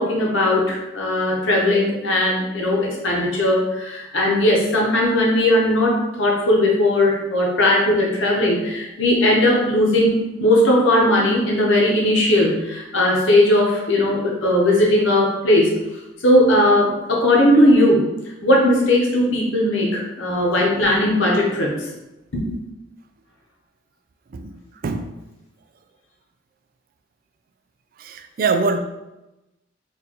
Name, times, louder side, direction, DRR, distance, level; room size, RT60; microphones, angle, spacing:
voice 1, 0.0-15.7 16.2-18.0 18.4-21.7 22.3-22.5, left 1 dB, 90° left, -2 dB, 0.8 m, -18 dB
voice 2, 20.4-20.8 24.3-24.6 24.8-25.1 28.0-28.8, right 4 dB, 50° right, 8 dB, 0.3 m, -24 dB
4.4 x 2.5 x 2.9 m, 0.99 s
head